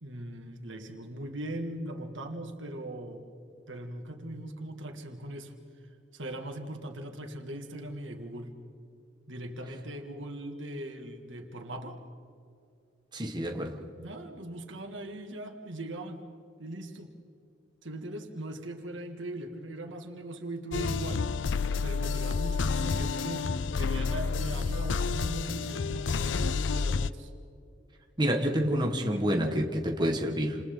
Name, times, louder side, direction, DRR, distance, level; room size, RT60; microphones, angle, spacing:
voice 1, 0.0-3.3 3.7-5.5 6.1-8.6 9.3-12.0 14.0-16.2 16.6-17.1 17.8-21.3 21.8-27.3, right 1 dB, 80° right, 2.4 m, -40 dB
voice 2, 13.1-13.9 28.2-30.6, equal, 25° right, 1.7 m, -28 dB
sound 1, 20.7-27.1, left 5 dB, 75° left, 0.5 m, -29 dB
29.0 x 28.0 x 4.0 m
head